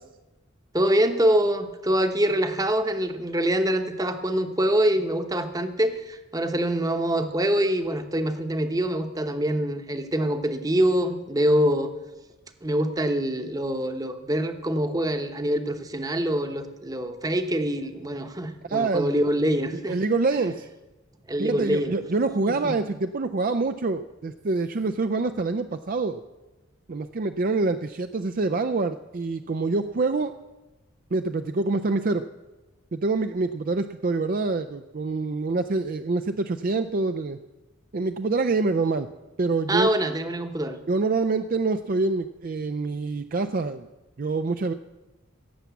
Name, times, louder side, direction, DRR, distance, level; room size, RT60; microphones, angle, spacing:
voice 1, 0.7-11.9 12.6-20.0 21.3-22.0 22.6-22.7 39.7-40.8, right 1 dB, 20° right, 7 dB, 0.9 m, -25 dB
voice 2, 18.7-19.2 19.9-20.7 21.4-26.2 26.9-30.3 31.1-32.2 32.9-37.4 37.9-39.1 39.4-39.9 40.9-43.9 44.2-44.7, right 3 dB, 45° right, 9 dB, 0.4 m, -26 dB
16.5 x 7.3 x 8.1 m, 1.1 s
head